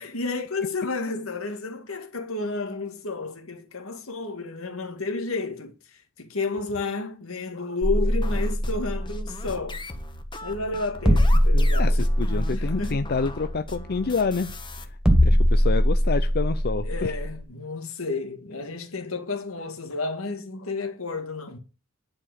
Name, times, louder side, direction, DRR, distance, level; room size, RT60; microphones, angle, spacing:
voice 1, 0.0-9.8 10.4-12.0 12.5-13.1 16.8-21.6, left 3 dB, 80° left, 2.1 m, -31 dB
sound 1, 7.8-17.4, equal, 5° right, 2.1 m, -22 dB
sound 2, 8.2-14.8, left 2 dB, 25° left, 1.3 m, -40 dB
voice 2, 11.5-17.1, left 4 dB, 50° left, 0.6 m, -28 dB
10.5 x 4.8 x 8.1 m
head